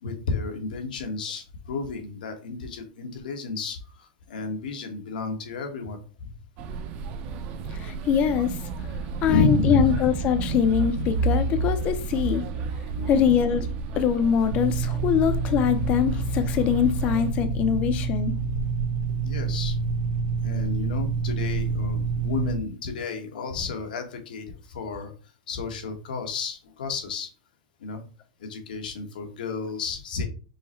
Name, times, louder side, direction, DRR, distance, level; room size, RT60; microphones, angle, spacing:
voice 1, 0.0-6.3 9.2-10.0 13.0-13.4 19.2-19.8 20.4-25.1 25.5-27.3 27.8-28.0 28.4-30.3, left 4 dB, 90° left, 1.3 m, -31 dB
sound 1, 6.6-17.3, right 4 dB, 35° right, 0.6 m, -31 dB
voice 2, 7.7-8.6 9.2-12.5 13.1-13.6 14.0-18.3, left 8 dB, 30° left, 0.5 m, -23 dB
sound 2, 14.5-22.6, right 4 dB, 85° right, 1.0 m, -27 dB
5.5 x 2.1 x 4.3 m
supercardioid pair, 165°, 5 cm